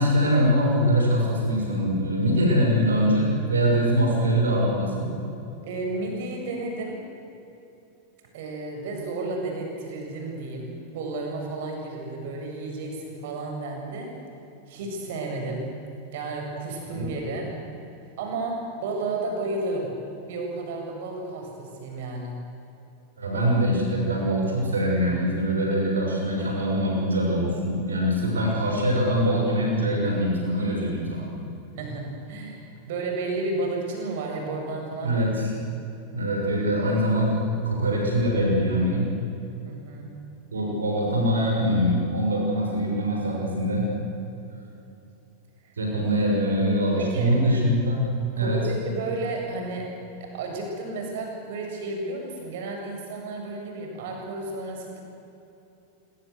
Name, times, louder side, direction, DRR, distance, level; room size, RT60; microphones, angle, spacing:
voice 1, 0.0-5.1 16.9-17.0 23.2-31.3 35.0-35.5 36.1-39.1 40.5-43.8 45.8-48.0 48.4-48.6, equal, 70° right, -1 dB, 6.6 m, -23 dB
voice 2, 5.6-7.0 8.3-14.1 14.7-15.7 16.1-17.5 18.2-19.9 20.2-22.4 31.8-35.3 39.6-40.1 45.6-45.7 47.0-47.3 48.4-49.9 50.2-55.0, right 2 dB, 55° right, 1 dB, 7.6 m, -32 dB
26.0 x 24.5 x 8.1 m, 2.9 s
figure-of-eight pair, 90°, 0 cm